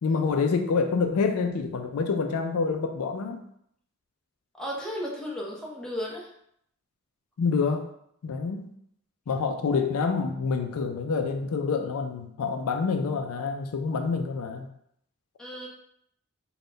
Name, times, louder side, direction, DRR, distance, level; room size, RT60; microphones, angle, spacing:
voice 1, 0.0-3.4 7.4-7.9 8.2-8.7 9.3-14.7, left 5 dB, 75° left, 6 dB, 0.4 m, -27 dB
voice 2, 4.5-6.3 15.4-15.7, equal, 5° left, -4 dB, 0.7 m, -34 dB
3.6 x 2.3 x 3.9 m, 0.70 s
head